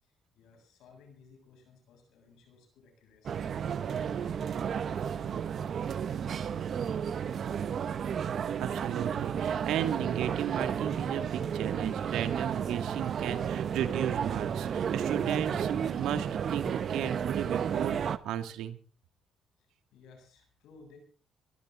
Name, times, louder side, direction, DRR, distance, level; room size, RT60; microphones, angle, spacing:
voice 1, 0.0-3.4 3.8-7.8 19.6-21.0, left 5 dB, 85° left, 4 dB, 7.7 m, -58 dB
sound 1, 3.2-18.2, right 8 dB, 55° right, 1.1 m, -32 dB
voice 2, 8.6-18.8, right 10 dB, 85° right, 9 dB, 2.1 m, -35 dB
24.0 x 13.5 x 3.8 m, 0.38 s
cardioid pair, 90°, 0 cm